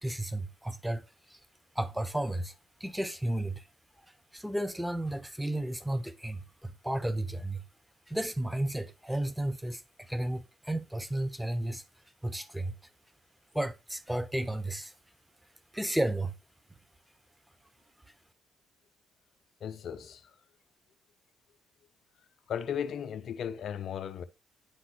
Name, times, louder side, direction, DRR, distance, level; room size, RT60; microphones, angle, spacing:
voice 1, 0.0-1.4 1.7-2.5 2.8-3.6 4.3-7.6 8.1-11.8 12.2-12.7 13.5-14.9 15.7-16.3, right 1 dB, 5° right, 0.8 m, -33 dB
voice 2, 19.6-20.2 22.5-24.2, left 8 dB, 55° left, 0.5 m, -36 dB
10.5 x 3.9 x 3.0 m
figure-of-eight pair, 45°, 0 cm